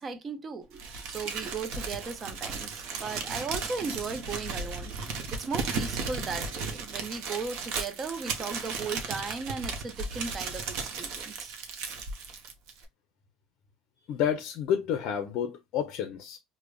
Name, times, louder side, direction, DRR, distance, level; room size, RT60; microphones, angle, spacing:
voice 1, 0.0-4.9 5.3-11.6, right 4 dB, 30° right, 0.5 m, -37 dB
Crumpling crinkling, 0.8-12.8, right 4 dB, 70° right, 0.7 m, -35 dB
voice 2, 14.1-16.4, left 9 dB, 60° left, 0.5 m, -30 dB
4.9 x 2.1 x 2.2 m
cardioid pair, 140°, 0 cm